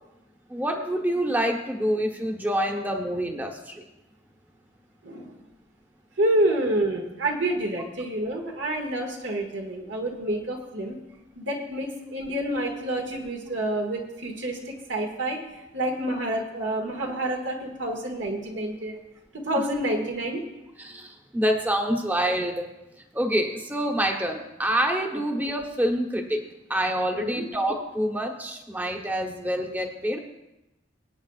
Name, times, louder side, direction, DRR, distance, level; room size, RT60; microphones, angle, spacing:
voice 1, 0.5-3.8 20.8-22.7 23.1-26.4 26.7-30.2, equal, 10° right, 3 dB, 1.1 m, -26 dB
voice 2, 5.0-5.4 6.2-11.0 11.4-19.0 19.3-20.4 27.1-27.5, right 1 dB, 70° right, 0 dB, 1.8 m, -28 dB
23.0 x 9.0 x 2.4 m, 0.97 s
head